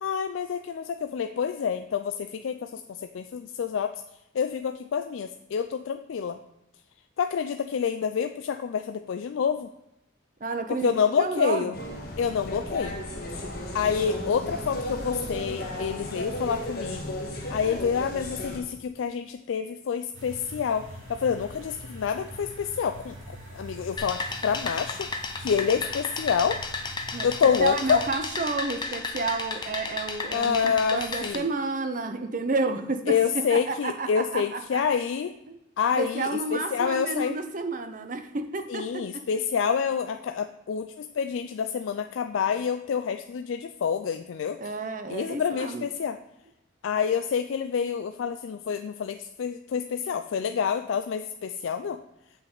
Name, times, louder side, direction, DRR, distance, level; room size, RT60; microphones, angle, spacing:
voice 1, 0.0-2.8 3.1-4.0 4.3-6.4 7.2-9.7 10.7-11.7 12.2-13.0 13.7-17.2 17.5-25.1 25.4-26.6 27.2-28.0 30.3-31.5 33.1-35.3 35.8-37.4 38.7-44.6 45.1-46.2 46.8-52.0, left 7 dB, 75° left, 8 dB, 0.3 m, -27 dB
voice 2, 10.4-10.9 11.2-11.7 27.1-27.3 27.6-34.8 35.5-35.6 36.0-39.2 44.6-45.9, right 3 dB, 40° right, 8 dB, 0.6 m, -31 dB
sound 1, 11.7-18.6, left 1 dB, 50° left, 1.5 m, -34 dB
sound 2, 20.1-28.1, equal, 80° right, 1.9 m, -44 dB
sound 3, 24.0-31.4, left 4 dB, 20° left, 0.6 m, -34 dB
7.6 x 5.8 x 3.9 m, 0.91 s
head